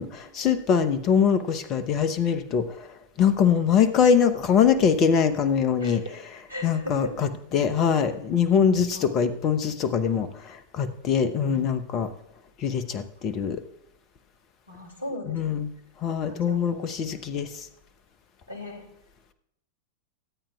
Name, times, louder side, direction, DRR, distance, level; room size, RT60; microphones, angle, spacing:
voice 1, 0.0-2.9 3.2-6.0 6.6-12.1 12.6-13.6 15.3-15.7 16.0-17.7, left 7 dB, 35° left, 13 dB, 0.9 m, -23 dB
voice 2, 5.8-6.2 6.5-7.1 8.9-9.1 11.3-11.7 14.7-15.4 16.2-16.9 18.5-18.8, left 1 dB, 80° right, 4 dB, 2.5 m, -37 dB
23.0 x 8.9 x 2.4 m, 0.78 s
figure-of-eight pair, 90°, 0 cm